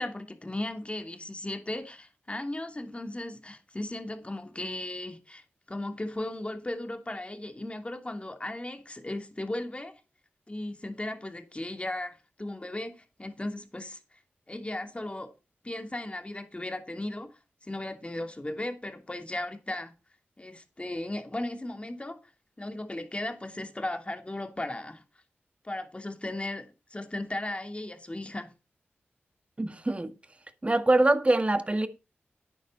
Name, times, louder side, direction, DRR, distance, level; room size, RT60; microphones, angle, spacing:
voice 1, 0.0-9.9 10.5-14.0 14.5-15.3 15.6-17.3 17.6-19.9 20.4-22.2 22.6-25.0 25.6-28.5, left 1 dB, 25° left, 2.7 m, -36 dB
voice 2, 29.6-30.1 30.6-31.9, right 2 dB, 25° right, 1.8 m, -24 dB
10.5 x 9.3 x 4.1 m
cardioid pair, 45°, 5 cm